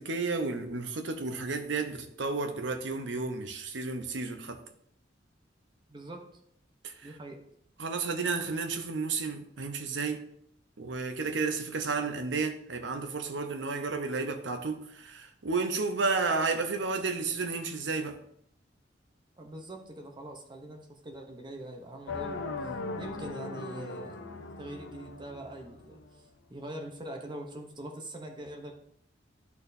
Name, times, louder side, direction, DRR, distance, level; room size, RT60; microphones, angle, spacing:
voice 1, 0.0-4.6 6.8-7.1 7.8-10.2 10.8-18.2, right 4 dB, 75° right, 0.8 m, -32 dB
voice 2, 5.9-6.3 7.0-7.4 19.4-22.5 23.0-28.7, right 1 dB, 25° right, 0.8 m, -43 dB
sound 1, 22.1-26.1, left 3 dB, 85° left, 0.6 m, -39 dB
10.5 x 4.3 x 2.7 m
head